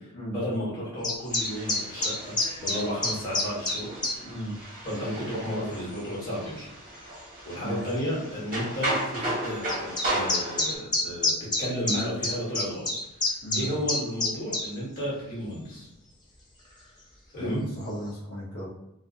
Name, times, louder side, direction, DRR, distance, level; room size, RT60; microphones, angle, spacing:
voice 1, 0.3-3.9 4.8-6.7 7.4-11.3 11.6-12.9 13.2-15.9 17.3-17.6, equal, 45° left, -8 dB, 1.2 m, -32 dB
sound 1, 1.0-4.2 4.9-5.0 5.9-6.0 7.2-7.3 7.6-7.7 7.9-8.0 9.7-14.7, left 2 dB, 20° left, 0.4 m, -27 dB
sound 2, 1.3-10.8, right 1 dB, 40° right, 0.8 m, -35 dB
voice 2, 4.2-4.5 7.6-7.8 13.4-13.7 17.4-18.7, equal, 85° left, -8 dB, 0.8 m, -35 dB
2.4 x 2.2 x 2.6 m, 0.88 s
head